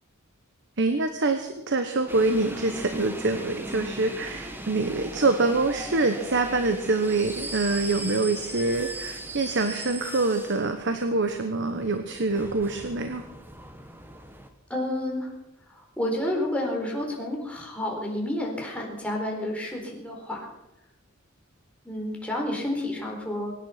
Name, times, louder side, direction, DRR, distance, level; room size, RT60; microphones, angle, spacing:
voice 1, 0.8-13.2, right 3 dB, 60° right, 7 dB, 1.2 m, -25 dB
sound 1, 2.1-14.5, right 1 dB, 10° right, 1.4 m, -39 dB
voice 2, 14.7-15.3 15.7-20.5 21.8-23.5, left 1 dB, 5° left, -1 dB, 4.2 m, -30 dB
24.0 x 9.9 x 5.9 m, 0.93 s
head